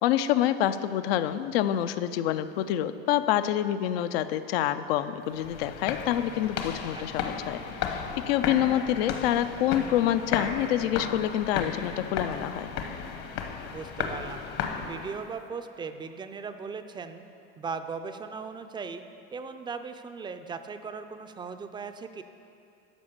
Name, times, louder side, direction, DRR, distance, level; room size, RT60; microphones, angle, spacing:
voice 1, 0.0-12.7, left 11 dB, 85° left, 11 dB, 0.5 m, -27 dB
sound 1, 5.3-15.3, left 6 dB, 55° left, 1.0 m, -34 dB
voice 2, 6.9-7.4 13.7-14.5 14.8-17.2 17.6-19.0 19.3-22.2, right 5 dB, 15° right, 9 dB, 0.4 m, -38 dB
12.5 x 5.1 x 6.7 m, 2.7 s
supercardioid pair, 125°, 30 cm